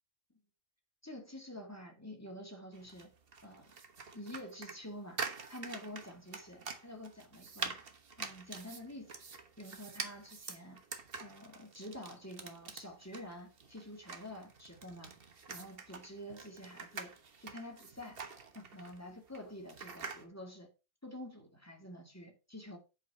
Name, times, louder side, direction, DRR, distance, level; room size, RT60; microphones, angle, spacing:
voice 1, 1.0-3.1 3.4-3.7 4.1-5.2 5.5-7.7 8.2-9.1 9.6-10.8 11.2-15.1 15.5-17.1 17.4-18.2 18.5-20.7 21.0-22.8, left 1 dB, 10° left, 2.1 m, -48 dB
sound 1, 2.7-20.2, right 5 dB, 45° right, 1.3 m, -46 dB
8.2 x 5.3 x 5.8 m
omnidirectional pair, 1.5 m